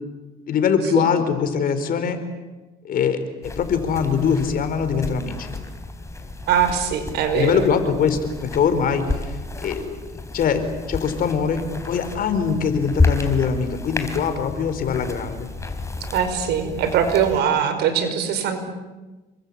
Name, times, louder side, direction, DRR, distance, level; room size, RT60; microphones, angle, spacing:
voice 1, 0.5-2.2 2.8-5.5 7.3-10.0 10.3-15.5, left 6 dB, 55° left, 9 dB, 4.3 m, -22 dB
sound 1, 3.4-17.4, left 3 dB, 15° left, 4.2 m, -30 dB
voice 2, 6.5-7.6 16.1-18.6, right 8 dB, 80° right, 8 dB, 5.3 m, -21 dB
28.5 x 23.5 x 8.7 m, 1.1 s
cardioid pair, 110°, 17 cm